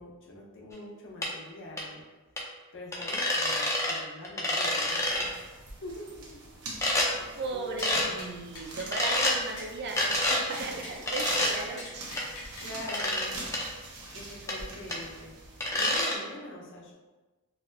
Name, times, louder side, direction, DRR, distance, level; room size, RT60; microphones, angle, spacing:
voice 1, 0.0-2.0 2.7-5.3 5.8-6.4 7.2-7.8 12.6-13.4 14.1-15.4 15.7-16.9, left 1 dB, 55° left, -2 dB, 0.6 m, -44 dB
sound 1, 1.2-1.3 1.8-1.9 2.4-2.5 2.9-4.0 4.2-5.3 6.8-7.1 7.8-8.1 8.9-9.4 10.0-10.4 11.1-11.5 12.2-12.3 12.9-13.3 13.5-13.6 14.5-14.6 14.9-15.0 15.6-16.1, left 1 dB, 15° left, 0.4 m, -27 dB
sound 2, 5.0-15.7, right 2 dB, 80° right, 0.7 m, -43 dB
voice 2, 7.1-12.1 14.4-14.6, right 3 dB, 50° right, 1 dB, 0.4 m, -37 dB
sound 3, 7.8-7.9 8.2-8.3 8.5-8.9 9.2-9.3 9.6-9.7 10.2-11.0 11.4-12.7 12.9-13.0 13.4-13.5, left 2 dB, 80° left, 1.0 m, -43 dB
4.1 x 2.0 x 2.5 m, 1.2 s
head